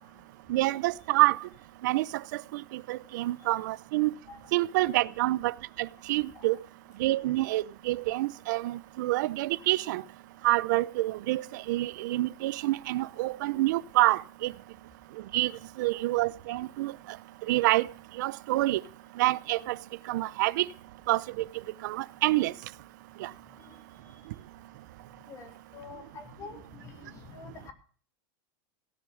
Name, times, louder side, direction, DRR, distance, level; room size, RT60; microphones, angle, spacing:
voice 1, 0.5-1.4 1.8-2.1 2.3-4.1 4.5-6.6 7.0-10.0 10.4-14.5 15.3-15.5 15.8-16.9 17.5-17.9 18.2-18.8 19.2-19.8 20.1-20.7 21.1-21.4 21.8-22.5 23.2-23.3, right 18 dB, 60° right, 0.6 m, -27 dB
voice 2, 25.3-27.7, left 5 dB, 25° left, 2.5 m, -47 dB
17.5 x 6.7 x 6.3 m
supercardioid pair, 160°, 11 cm